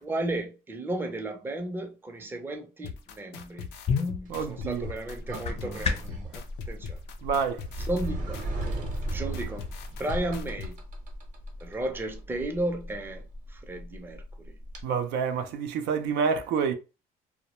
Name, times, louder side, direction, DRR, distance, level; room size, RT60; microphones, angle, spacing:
voice 1, 0.0-3.7 4.5-7.0 7.9-8.5 9.1-9.7 10.0-10.8 11.6-13.2 13.5-14.5, right 1 dB, 10° right, 0.5 m, -34 dB
sound 1, 2.8-10.7, left 7 dB, 90° left, 0.4 m, -40 dB
sound 2, 3.6-6.3, left 5 dB, 40° left, 0.5 m, -32 dB
Sliding door, 4.3-14.8, right 1 dB, 45° right, 0.8 m, -37 dB
voice 2, 4.3-4.9 7.2-7.6 14.8-16.7, right 6 dB, 85° right, 0.4 m, -28 dB
2.2 x 2.0 x 2.9 m
cardioid pair, 110°, 17 cm